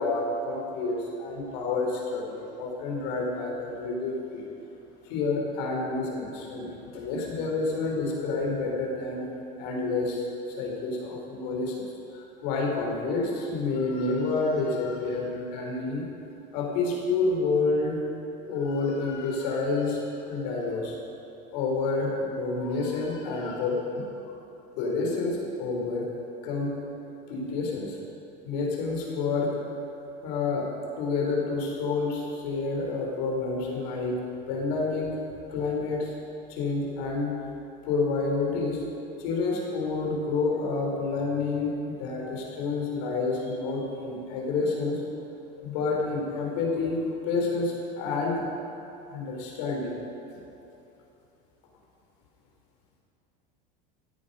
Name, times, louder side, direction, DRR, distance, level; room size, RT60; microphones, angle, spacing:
voice 1, 0.0-4.4 5.0-9.3 9.6-10.2 10.6-11.8 12.1-16.0 16.5-18.0 18.5-20.9 21.5-24.0 24.8-26.1 26.4-26.8 27.3-28.0 28.4-29.6 30.2-30.7 31.0-34.2 34.5-35.2 35.5-36.1 36.5-37.4 37.8-38.8 39.2-45.0 45.6-48.4 49.1-50.0, left 3 dB, 70° left, -1 dB, 3.8 m, -29 dB
16.0 x 11.0 x 5.5 m, 2.9 s
supercardioid pair, 145°, 21 cm